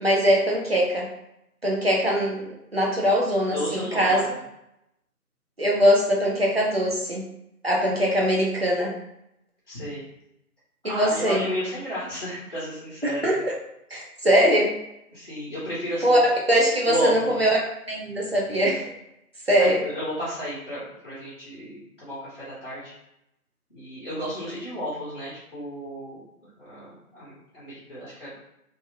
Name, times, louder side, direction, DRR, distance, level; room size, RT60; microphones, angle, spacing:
voice 1, 0.0-1.1 1.6-4.2 5.6-7.3 7.6-8.9 10.8-11.4 13.0-13.4 13.9-14.7 16.0-16.2 16.5-17.6 17.9-18.8 19.5-19.8, equal, 45° right, -3 dB, 0.5 m, -21 dB
voice 2, 3.5-4.4 9.7-10.1 10.8-13.3 15.1-16.2 16.8-17.5 19.5-22.9 23.7-28.3, equal, 35° left, -10 dB, 0.9 m, -33 dB
2.7 x 2.0 x 2.6 m, 0.82 s
figure-of-eight pair, 160°, 46 cm